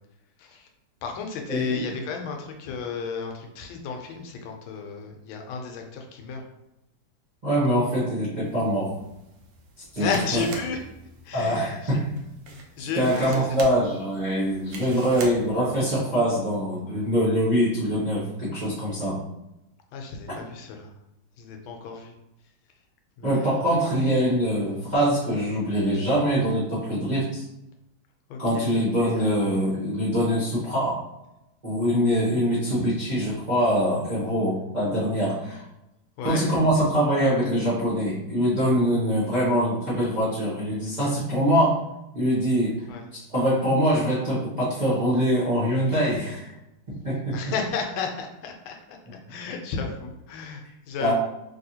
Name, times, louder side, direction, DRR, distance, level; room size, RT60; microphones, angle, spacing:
voice 1, 0.4-0.7 1.0-6.4 10.0-10.9 11.2-12.0 12.5-13.6 19.9-20.9 21.4-22.1 23.2-23.7 28.3-28.7 29.2-29.3 36.2-36.4 42.9-43.0 47.3-51.1, left 5 dB, 85° left, 3 dB, 1.4 m, -33 dB
voice 2, 1.5-1.9 7.4-8.9 9.9-10.1 11.3-12.1 13.0-19.2 23.2-27.4 28.4-31.0 31.6-35.6 36.2-41.8 42.1-42.8 43.1-46.5 46.9-47.4 51.0-51.1, equal, 35° right, -11 dB, 0.7 m, -23 dB
sound 1, 8.4-16.0, right 3 dB, 80° right, 0.8 m, -43 dB
3.4 x 2.7 x 2.7 m, 0.89 s
omnidirectional pair, 2.2 m